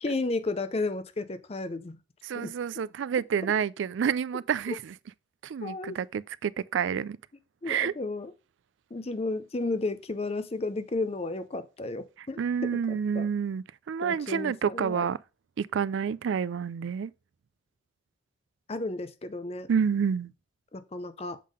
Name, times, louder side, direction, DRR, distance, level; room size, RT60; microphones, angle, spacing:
voice 1, 0.0-2.0 2.4-2.5 5.6-6.0 7.6-8.3 8.9-13.3 14.0-15.1 18.7-19.7 20.7-21.4, left 2 dB, 30° left, 0.5 m, -33 dB
voice 2, 2.2-4.9 5.4-7.2 7.7-7.9 12.4-15.2 15.6-17.1 19.7-20.3, right 7 dB, 65° right, 0.3 m, -29 dB
7.4 x 3.6 x 5.2 m
head